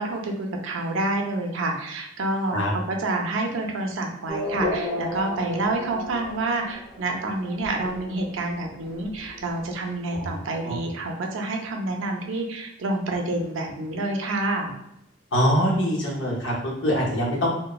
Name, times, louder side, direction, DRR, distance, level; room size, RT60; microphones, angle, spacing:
voice 1, 0.0-14.7, right 2 dB, 80° right, 2 dB, 0.4 m, -28 dB
Race car auto racing / Accelerating revving vroom, 4.3-10.4, left 1 dB, ahead, 0.6 m, -34 dB
voice 2, 15.3-17.5, equal, 70° left, -4 dB, 0.8 m, -23 dB
3.0 x 2.0 x 2.3 m, 0.81 s
head